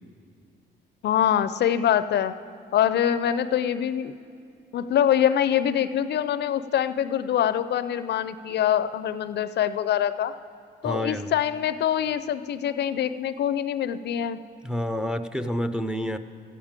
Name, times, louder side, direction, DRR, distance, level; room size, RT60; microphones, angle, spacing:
voice 1, 1.0-2.3 2.7-4.1 4.7-10.3 10.8-14.4, left 10 dB, 60° left, 13 dB, 0.4 m, -24 dB
voice 2, 10.8-11.3 14.6-16.2, equal, 5° right, 10 dB, 0.4 m, -28 dB
14.0 x 8.8 x 5.1 m, 2.4 s
cardioid pair, 90°, 20 cm